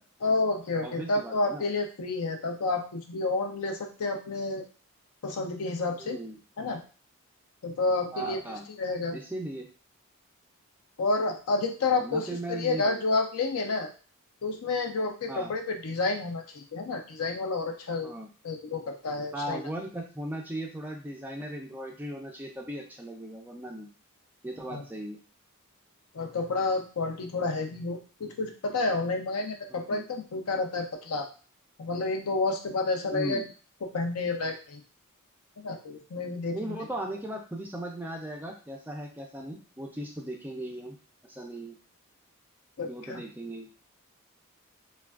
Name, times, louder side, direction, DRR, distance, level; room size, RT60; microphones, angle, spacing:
voice 1, 0.2-4.6 5.2-6.2 6.6-6.8 7.6-8.4 8.8-9.2 11.0-13.9 14.4-18.1 18.4-19.6 24.7-24.8 26.1-31.3 31.8-33.4 33.9-34.8 35.6-36.6 42.8-43.2, left 3 dB, 75° left, 4 dB, 0.5 m, -30 dB
voice 2, 0.8-1.6 6.0-6.4 8.1-8.7 9.1-9.7 11.9-13.0 15.3-15.5 18.0-18.3 19.3-23.9 24.4-25.2 29.7-30.1 33.1-33.4 36.5-41.0 41.3-41.8 42.9-43.7, right 1 dB, 10° right, 1 dB, 0.3 m, -37 dB
3.3 x 2.2 x 2.3 m, 0.37 s
head